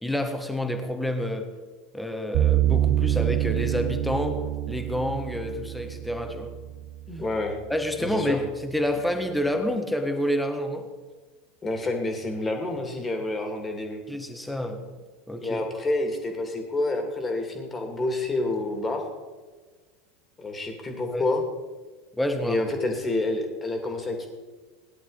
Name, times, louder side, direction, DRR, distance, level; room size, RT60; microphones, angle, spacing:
voice 1, 0.0-1.5 1.9-4.4 4.7-6.5 7.7-10.9 14.1-14.8 15.3-15.6 21.1-21.2 22.2-22.6, equal, 5° left, 6 dB, 1.6 m, -28 dB
sound 1, 2.3-7.5, right 13 dB, 50° right, 1.1 m, -26 dB
voice 2, 7.1-7.6 8.0-8.4 11.6-14.0 15.4-19.0 20.4-21.4 22.4-24.3, left 2 dB, 20° left, 3 dB, 2.5 m, -28 dB
18.0 x 11.0 x 4.1 m, 1.3 s
figure-of-eight pair, 80°, 0 cm